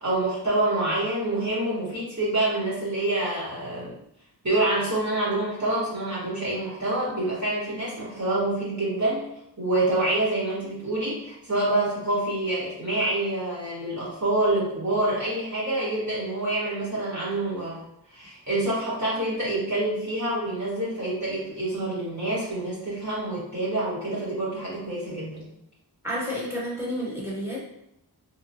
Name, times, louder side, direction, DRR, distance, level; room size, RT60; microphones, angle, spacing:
voice 1, 0.0-3.9 4.4-9.3 9.6-17.8 18.1-25.5, right 2 dB, 40° right, -9 dB, 1.2 m, -27 dB
voice 2, 26.0-27.6, equal, 5° right, -5 dB, 1.1 m, -30 dB
2.9 x 2.2 x 2.6 m, 0.79 s
wide cardioid pair, 70°, 42 cm